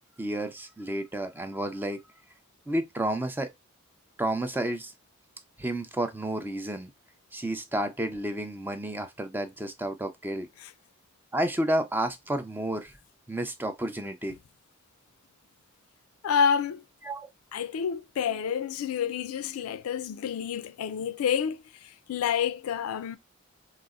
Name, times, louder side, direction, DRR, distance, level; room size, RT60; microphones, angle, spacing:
voice 1, 0.2-2.0 2.7-3.5 4.2-4.9 5.6-6.9 7.3-10.5 11.3-12.9 13.3-14.4 17.0-17.3, right 1 dB, 10° right, 0.4 m, -31 dB
voice 2, 16.2-16.8 17.5-23.2, left 7 dB, 85° left, 0.3 m, -29 dB
3.9 x 2.0 x 2.3 m
head